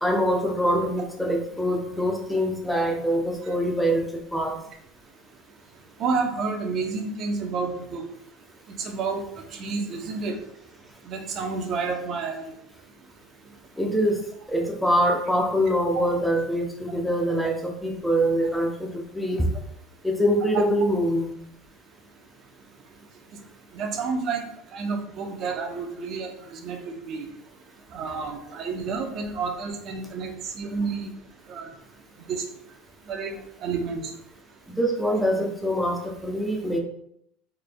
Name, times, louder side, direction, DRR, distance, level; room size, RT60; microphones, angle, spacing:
voice 1, 0.0-4.6 13.8-14.2 14.5-19.5 20.0-21.3 34.7-36.8, equal, 5° left, 1 dB, 0.6 m, -24 dB
voice 2, 6.0-8.0 8.8-9.2 9.5-10.4 11.0-12.4 15.9-16.1 16.9-17.0 23.7-24.4 24.7-26.8 27.1-27.3 27.9-31.1 31.5-31.7 32.3-32.4 33.1-33.4 33.6-34.1, right 4 dB, 45° right, 4 dB, 0.6 m, -30 dB
3.9 x 3.3 x 2.2 m, 0.75 s
supercardioid pair, 125°, 0 cm